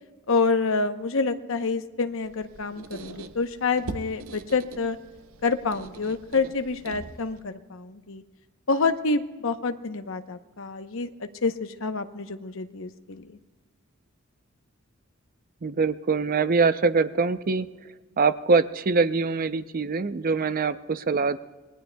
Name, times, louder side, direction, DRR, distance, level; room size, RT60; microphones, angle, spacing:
voice 1, 0.3-5.0 5.4-8.2 8.7-13.4, left 4 dB, 70° left, 8 dB, 0.8 m, -27 dB
Squeak, 2.2-7.5, right 3 dB, 85° right, 0.7 m, -42 dB
voice 2, 15.6-17.7 18.2-21.4, right 4 dB, 45° right, 12 dB, 0.5 m, -23 dB
27.0 x 20.0 x 2.3 m, 1.3 s
head